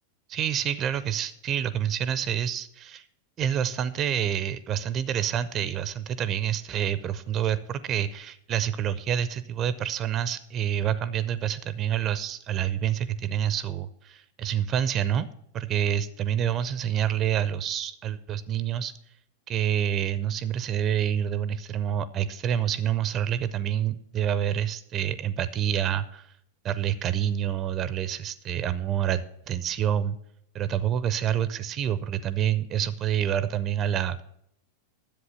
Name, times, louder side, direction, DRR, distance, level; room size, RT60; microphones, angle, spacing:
voice 1, 0.3-3.0 3.4-15.3 15.5-18.9 19.5-26.3 26.6-30.2 30.5-34.2, right 9 dB, 30° right, 16 dB, 0.5 m, -27 dB
10.5 x 7.8 x 5.6 m, 0.73 s
figure-of-eight pair, 90°, 0 cm